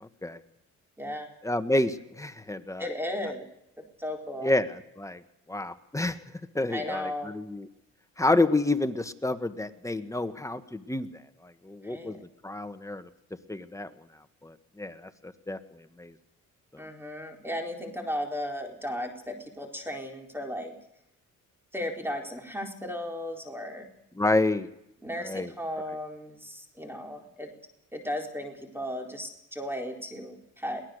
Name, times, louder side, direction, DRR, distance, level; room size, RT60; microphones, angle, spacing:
voice 1, 0.0-0.4 1.4-2.9 4.4-5.2 5.5-6.2 6.5-7.7 8.2-11.1 11.4-12.2 12.4-13.1 13.5-13.9 14.4-16.1 24.2-24.7 25.2-25.5, left 2 dB, 10° left, 9 dB, 1.5 m, -29 dB
voice 2, 1.0-1.3 2.8-3.5 4.0-4.5 6.7-7.3 11.8-12.2 16.8-20.7 21.7-23.9 25.0-27.5 27.9-30.8, left 1 dB, 5° right, 3 dB, 4.2 m, -35 dB
22.5 x 18.0 x 6.6 m, 0.81 s
cardioid pair, 90°, 30 cm